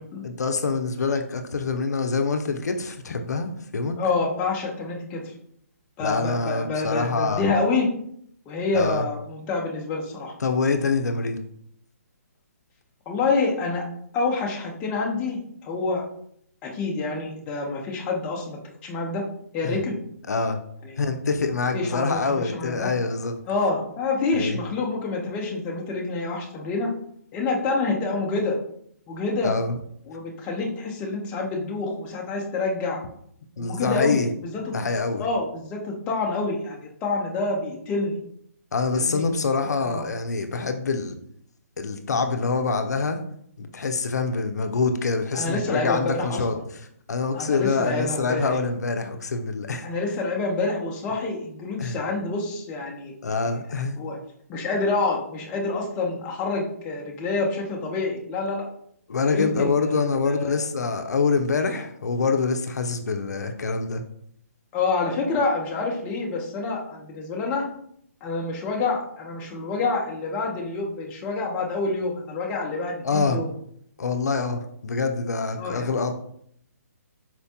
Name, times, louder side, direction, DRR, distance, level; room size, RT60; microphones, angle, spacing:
voice 1, 0.2-4.0 6.0-7.4 8.7-9.1 10.4-11.4 19.6-19.8 20.3-20.6 21.0-23.4 24.3-24.6 29.4-29.7 33.6-34.3 34.7-35.2 38.7-41.1 41.8-43.2 43.6-46.5 47.1-49.9 51.8-52.0 53.2-54.0 59.1-64.0 73.0-73.4 74.0-76.1, left 4 dB, 85° left, 6 dB, 0.4 m, -25 dB
voice 2, 4.0-5.3 6.0-7.9 8.5-10.3 13.1-13.8 14.1-16.0 16.6-19.2 19.5-20.0 20.8-21.0 21.7-22.9 23.5-26.9 27.3-28.6 29.1-29.5 30.1-33.0 33.6-34.7 35.2-38.2 38.9-39.2 39.8-40.0 45.3-46.4 47.3-48.6 49.8-53.1 54.0-54.2 54.5-58.7 59.2-60.7 64.7-67.7 68.2-73.5 75.6-75.9, left 3 dB, 15° left, -1 dB, 0.4 m, -27 dB
4.3 x 2.1 x 2.7 m, 0.68 s
hypercardioid pair, 155°, 9 cm